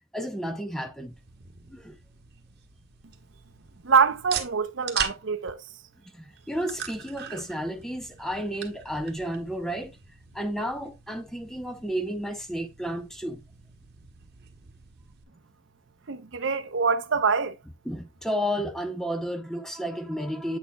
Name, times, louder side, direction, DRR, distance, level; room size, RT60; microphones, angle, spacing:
voice 1, 0.1-1.2 1.7-2.0 6.1-10.0 10.3-13.4 17.8-20.6, equal, ahead, 0.7 m, -32 dB
sound 1, 1.0-15.2, right 8 dB, 50° right, 1.1 m, -41 dB
voice 2, 3.8-5.6 16.1-17.6, right 5 dB, 70° right, 0.7 m, -24 dB
8.2 x 6.4 x 2.2 m
head